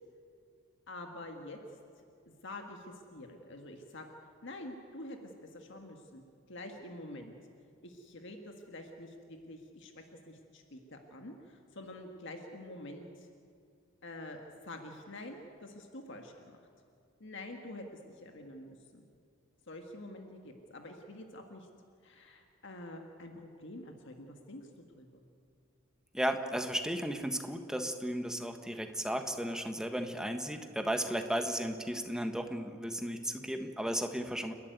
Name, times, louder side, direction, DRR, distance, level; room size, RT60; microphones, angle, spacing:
voice 1, 0.9-1.6 2.0-4.1 4.4-6.2 6.5-7.3 7.8-13.3 14.0-16.6 17.2-17.8 18.1-19.1 19.7-21.7 22.0-24.7 25.0-25.2, left 1 dB, 65° left, 4 dB, 1.8 m, -47 dB
voice 2, 26.1-34.5, equal, 5° right, 6 dB, 1.3 m, -34 dB
29.5 x 11.5 x 9.4 m, 2.4 s
head